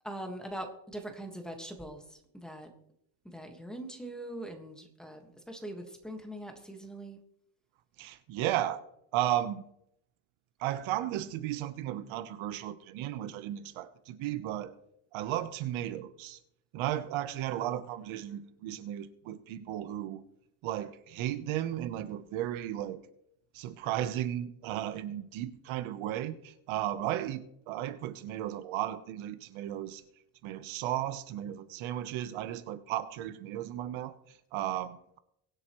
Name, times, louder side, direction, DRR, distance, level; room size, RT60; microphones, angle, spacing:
voice 1, 0.0-2.7 3.2-7.2, right 1 dB, ahead, 1.6 m, -42 dB
voice 2, 8.0-8.8 9.1-9.6 10.6-14.7 15.1-16.4 16.7-20.2 20.6-23.0 23.5-30.0 30.4-35.2, right 12 dB, 75° right, 1.1 m, -35 dB
23.0 x 8.0 x 3.1 m
cardioid pair, 160°, 49 cm